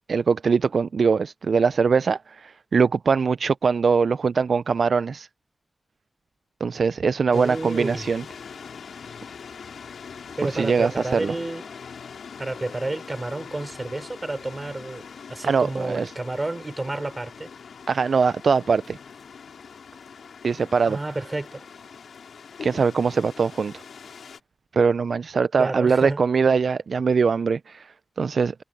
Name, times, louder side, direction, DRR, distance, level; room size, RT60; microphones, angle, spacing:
voice 1, 0.1-5.3 6.6-8.2 10.5-11.3 15.4-16.1 17.9-19.0 20.4-21.0 22.6-23.8 24.7-28.5, right 5 dB, 70° right, 0.4 m, -22 dB
sound 1, 7.3-24.4, left 6 dB, 85° left, 5.9 m, -42 dB
voice 2, 7.3-8.0 10.4-11.6 12.4-17.5 20.9-21.6 25.6-26.2, right 2 dB, 30° right, 5.7 m, -30 dB
cardioid pair, 50°, 0 cm